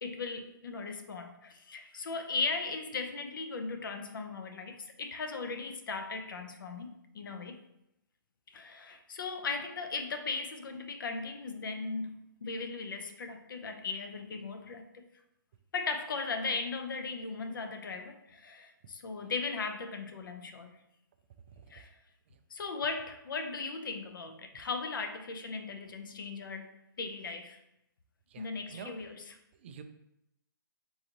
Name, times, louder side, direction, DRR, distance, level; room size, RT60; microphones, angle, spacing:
voice 1, 0.0-7.6 8.5-15.0 15.7-20.8 21.7-21.9 22.5-26.7 27.0-27.6 28.4-29.2, left 4 dB, 70° left, 6 dB, 0.7 m, -37 dB
voice 2, 28.3-29.1 29.5-29.8, right 6 dB, 35° right, 8 dB, 0.3 m, -49 dB
3.9 x 3.0 x 3.9 m, 0.83 s
hypercardioid pair, 160°, 12 cm